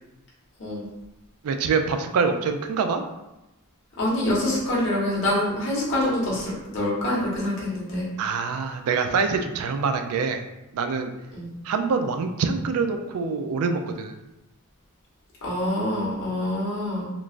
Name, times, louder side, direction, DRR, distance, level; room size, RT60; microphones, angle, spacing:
voice 1, 1.4-3.0 8.2-10.4 10.7-11.1 11.6-14.2, right 5 dB, 75° right, 7 dB, 0.3 m, -25 dB
voice 2, 3.9-8.1 11.3-11.5 15.4-17.0, left 1 dB, 55° left, -6 dB, 1.2 m, -25 dB
3.8 x 2.3 x 2.4 m, 0.96 s
head